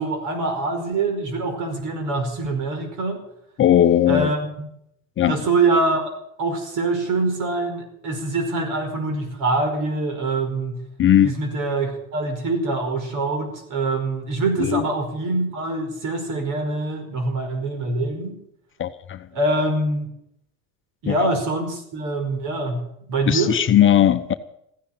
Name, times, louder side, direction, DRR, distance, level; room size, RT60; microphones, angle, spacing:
voice 1, 0.0-3.2 4.1-4.7 5.3-6.1 6.4-10.8 11.2-18.4 19.3-20.1 21.0-23.5, right 2 dB, 55° right, 5.2 m, -24 dB
voice 2, 3.6-4.3 5.2-5.4 11.0-11.4 14.6-14.8 18.8-19.3 21.1-21.3 23.3-24.3, left 11 dB, 35° left, 0.9 m, -18 dB
15.0 x 10.0 x 9.0 m
supercardioid pair, 110°, 36 cm